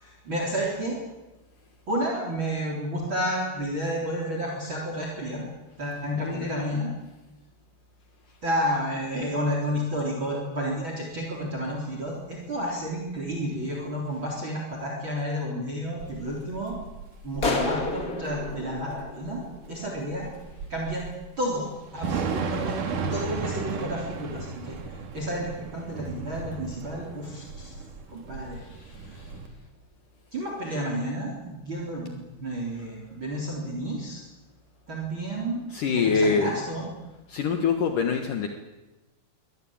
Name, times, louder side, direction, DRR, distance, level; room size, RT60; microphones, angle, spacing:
voice 1, 0.0-1.0 1.9-5.5 5.8-6.9 8.4-16.8 17.2-20.3 20.7-21.0 21.4-24.8 25.1-27.8 28.1-28.6 30.3-34.2 34.9-35.6 35.9-36.8, equal, 30° right, -1 dB, 4.3 m, -31 dB
voice 2, 6.2-6.8 35.7-36.5 37.3-38.5, left 5 dB, 60° left, 5 dB, 2.8 m, -25 dB
Thunder / Rain, 16.0-29.5, right 5 dB, 55° right, 3.6 m, -35 dB
sound 1, 17.4-20.0, left 3 dB, 25° left, 2.5 m, -31 dB
24.5 x 18.5 x 8.9 m, 1.1 s
omnidirectional pair, 4.5 m